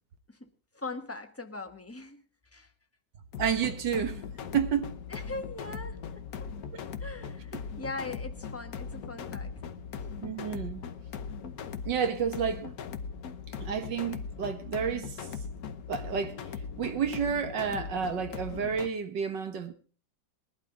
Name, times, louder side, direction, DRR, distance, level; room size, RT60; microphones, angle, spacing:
voice 1, 0.3-2.2 2.5-2.7 5.1-6.5 7.0-10.1, left 2 dB, 10° left, 0.8 m, -41 dB
sound 1, 3.3-18.9, left 6 dB, 55° left, 1.3 m, -39 dB
voice 2, 3.4-4.2 4.5-4.9 6.7-6.8 7.5-7.6 10.2-10.8 11.9-12.7 13.6-15.2 15.9-16.4 16.8-19.7, right 7 dB, 70° right, 2.0 m, -30 dB
21.0 x 12.0 x 3.7 m
omnidirectional pair, 2.1 m